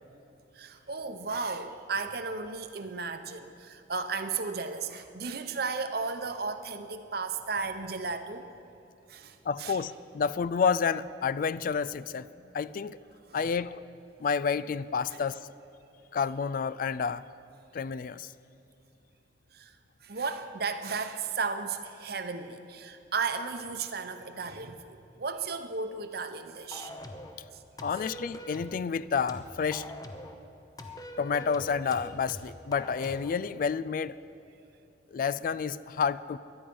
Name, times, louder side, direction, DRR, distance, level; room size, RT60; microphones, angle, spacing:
voice 1, 0.6-8.5 9.1-9.8 12.4-12.5 13.3-13.4 19.5-19.7 20.0-26.9, right 4 dB, 55° right, 8 dB, 0.8 m, -34 dB
voice 2, 9.5-12.3 12.5-13.0 13.3-13.8 14.2-15.4 16.1-17.2 17.7-18.3 27.8-29.9 31.2-34.2 35.1-36.4, left 6 dB, 50° left, 18 dB, 0.3 m, -29 dB
sound 1, 26.7-27.4 27.8-28.8 29.3-30.4 30.8-33.4, left 1 dB, 20° left, 0.8 m, -43 dB
17.0 x 11.5 x 5.4 m, 2.9 s
head